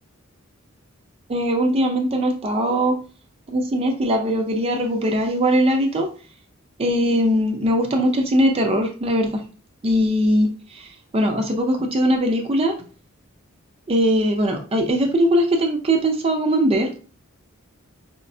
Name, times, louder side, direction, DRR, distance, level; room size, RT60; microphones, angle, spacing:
voice 1, 1.3-2.9 3.5-6.1 6.8-9.4 9.8-10.5 10.7-10.8 11.1-12.7 13.9-16.9, equal, 30° right, 3 dB, 0.4 m, -20 dB
4.3 x 2.0 x 2.6 m, 0.38 s
head